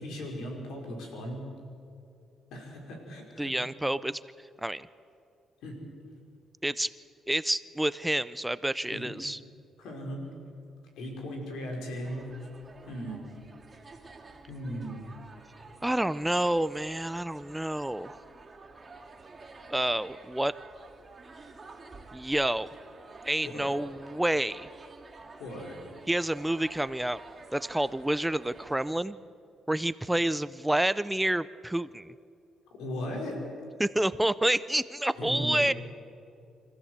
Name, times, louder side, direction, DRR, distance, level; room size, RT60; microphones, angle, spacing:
voice 1, 0.0-1.4 2.5-3.5 5.6-5.8 8.9-9.0 9.8-10.3 11.0-12.2 12.9-13.2 14.5-15.0 23.4-23.7 25.4-25.8 32.8-33.4 35.2-35.6, equal, 85° left, 1 dB, 5.2 m, -37 dB
voice 2, 3.4-4.2 4.6-4.9 6.6-6.9 7.3-9.4 15.8-18.2 19.7-20.5 22.1-22.7 23.2-24.7 26.1-27.2 27.5-29.2 29.7-32.1 33.8-35.7, right 1 dB, 5° right, 16 dB, 0.5 m, -28 dB
sound 1, 12.0-28.9, right 3 dB, 30° right, 2.8 m, -50 dB
25.5 x 14.5 x 8.1 m, 2.5 s
cardioid pair, 90°, 0 cm